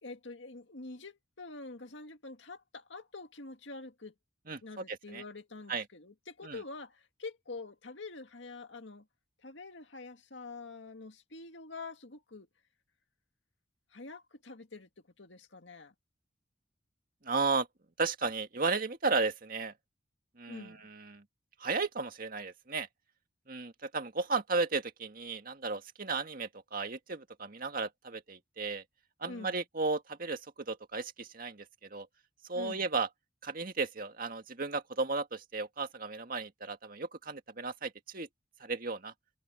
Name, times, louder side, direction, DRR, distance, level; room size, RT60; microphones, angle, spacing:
voice 1, 0.0-4.1 4.6-9.1 9.4-12.5 13.9-14.9 15.2-15.9 20.5-20.8 29.3-29.6 32.5-32.9, left 3 dB, 75° left, 2.0 m, -46 dB
voice 2, 4.5-5.2 5.7-5.8 6.4-6.6 17.2-17.7 18.0-19.7 20.4-21.2 21.6-22.9 23.5-28.8 29.2-30.4 30.7-32.1 32.5-33.1 33.4-38.3 38.6-39.1, right 4 dB, 50° right, 2.0 m, -34 dB
head